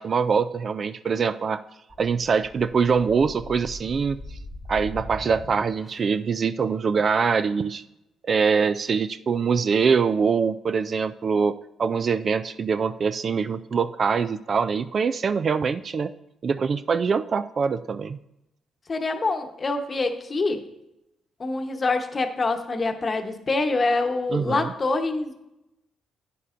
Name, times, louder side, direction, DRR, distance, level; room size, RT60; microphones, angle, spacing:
voice 1, 0.0-1.6 2.0-4.2 4.7-7.8 8.2-16.1 16.4-18.2 24.3-24.7, right 5 dB, 45° right, 12 dB, 0.3 m, -24 dB
sound 1, 1.9-6.2, left 2 dB, 20° left, 1.2 m, -41 dB
voice 2, 18.9-20.6 21.4-25.3, left 3 dB, 35° left, 6 dB, 1.0 m, -25 dB
11.0 x 9.2 x 2.5 m, 0.89 s
cardioid pair, 90°, 0 cm